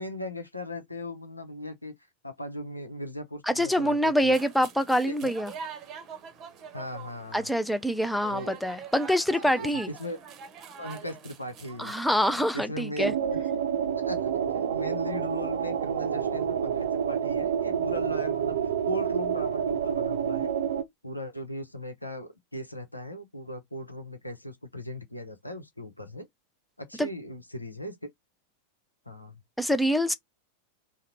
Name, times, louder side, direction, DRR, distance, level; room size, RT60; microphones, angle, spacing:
voice 1, 0.0-1.9 2.2-4.4 5.1-5.2 6.7-7.5 8.3-8.6 9.5-10.2 10.8-11.9 12.5-13.4 14.0-18.6 18.9-20.5 21.0-26.3 26.8-28.1 29.1-29.4, left 1 dB, 85° left, 0.7 m, -38 dB
voice 2, 3.5-5.5 7.3-9.9 11.8-13.1 27.0-27.1 29.6-30.1, equal, ahead, 0.5 m, -25 dB
sound 1, 4.3-12.0, right 6 dB, 35° right, 0.8 m, -44 dB
sound 2, 13.0-20.8, right 8 dB, 60° right, 0.6 m, -28 dB
3.7 x 2.1 x 4.3 m
figure-of-eight pair, 90°, 0 cm